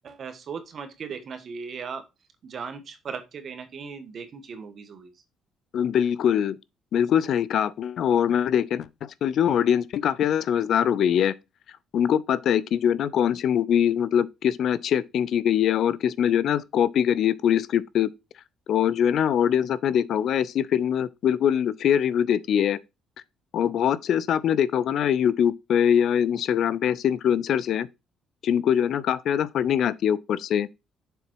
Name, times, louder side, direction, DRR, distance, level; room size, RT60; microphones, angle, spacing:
voice 1, 0.0-2.0 2.4-5.1, right 6 dB, 50° right, 1.3 m, -37 dB
voice 2, 5.7-6.6 6.9-11.3 11.9-18.1 18.7-22.8 23.5-27.9 28.4-30.7, left 9 dB, 65° left, 0.4 m, -23 dB
6.8 x 4.0 x 4.5 m
cardioid pair, 90°, 0 cm